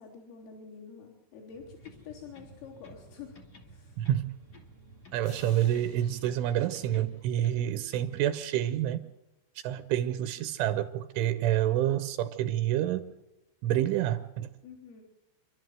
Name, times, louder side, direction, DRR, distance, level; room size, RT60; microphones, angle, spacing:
voice 1, 0.0-3.4 3.7-4.0 14.6-15.0, left 6 dB, 80° left, -6 dB, 6.2 m, -47 dB
sound 1, 1.5-7.1, right 3 dB, 55° right, 1.6 m, -54 dB
sound 2, 1.8-3.1 3.3-4.8 5.0-6.5 6.7-8.2, left 3 dB, 45° left, 1.2 m, -56 dB
voice 2, 4.0-4.3 5.1-9.1 9.6-13.2 13.6-14.5, right 12 dB, 80° right, 11 dB, 3.1 m, -28 dB
sound 3, 5.2-7.9, left 6 dB, 60° left, 3.5 m, -57 dB
28.5 x 12.0 x 7.7 m, 1.0 s
omnidirectional pair, 5.8 m